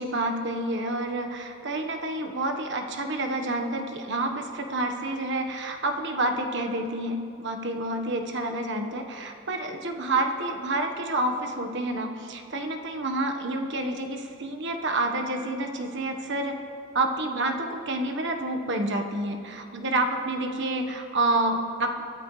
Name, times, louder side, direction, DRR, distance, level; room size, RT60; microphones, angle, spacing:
voice 1, 0.0-16.6 16.9-22.0, right 2 dB, 55° right, 4 dB, 1.3 m, -28 dB
23.0 x 14.0 x 3.3 m, 2.6 s
head